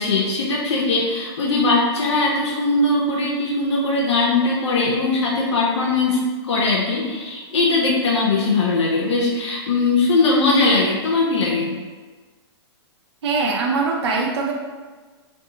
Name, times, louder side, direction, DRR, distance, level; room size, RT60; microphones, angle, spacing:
voice 1, 0.0-6.2 6.5-11.8, left 3 dB, 85° left, -2 dB, 0.5 m, -20 dB
voice 2, 13.2-14.5, right 4 dB, 70° right, -1 dB, 0.4 m, -22 dB
2.6 x 2.2 x 2.7 m, 1.4 s
hypercardioid pair, 155°, 14 cm